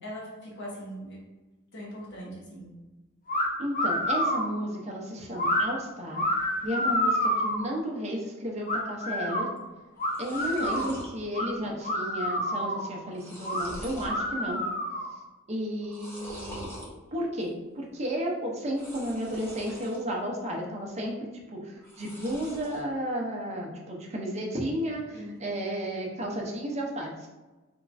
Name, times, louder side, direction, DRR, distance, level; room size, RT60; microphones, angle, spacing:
voice 1, 0.0-1.2 1.7-2.7 25.1-25.4, equal, 60° left, -4 dB, 0.9 m, -40 dB
sound 1, 3.3-3.5 3.7-4.5 5.4-5.6 6.1-7.7 8.7-9.5 10.0-10.9 11.3-11.5 11.8-12.9 13.4-13.7 14.0-15.1, equal, 45° left, 0.6 m, -28 dB
voice 2, 3.6-6.2 6.6-9.5 10.2-14.6 15.5-16.7 17.1-27.3, equal, 35° right, -2 dB, 0.7 m, -33 dB
sound 2, 9.6-9.7 9.9-11.1 11.5-12.0 12.2-12.3 12.9-14.2 14.6-15.1 15.8-16.9 18.6-20.0 20.4-21.0 21.8-22.8, equal, 10° left, 0.9 m, -44 dB
3.6 x 3.0 x 2.5 m, 1.1 s
head